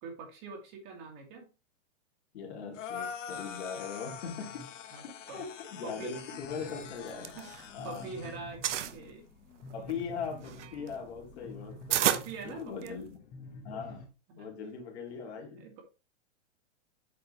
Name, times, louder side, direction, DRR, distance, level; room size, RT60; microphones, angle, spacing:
voice 1, 0.0-1.5 4.5-4.6 4.9-5.0 5.3-5.4 5.8-6.1 7.4-8.6 8.9-9.2 12.1-13.1 14.3-14.5 15.6-15.8, right 4 dB, 35° right, 2.0 m, -44 dB
voice 2, 2.3-4.7 5.0-7.4 7.7-8.1 9.7-12.2 12.4-13.1 13.6-14.0 14.4-15.7, left 6 dB, 60° left, 2.5 m, -40 dB
sound 1, 2.7-8.4, left 8 dB, 85° left, 1.1 m, -44 dB
sound 2, 6.4-14.1, left 2 dB, 25° left, 1.4 m, -49 dB
sound 3, 6.9-8.1 8.3-9.0 9.6-13.2, right 11 dB, 75° right, 0.9 m, -32 dB
8.4 x 4.3 x 3.2 m
supercardioid pair, 160°, 36 cm